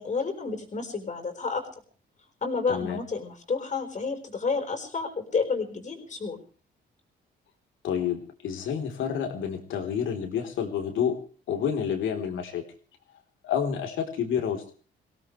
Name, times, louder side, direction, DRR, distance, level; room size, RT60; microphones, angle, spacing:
voice 1, 0.0-1.7 2.4-6.4, left 4 dB, 40° left, 4 dB, 4.6 m, -30 dB
voice 2, 2.7-3.0 7.8-11.2 11.5-12.6 13.4-14.7, left 8 dB, 80° left, 5 dB, 3.8 m, -29 dB
24.5 x 17.0 x 3.3 m, 0.39 s
cardioid pair, 90°, 20 cm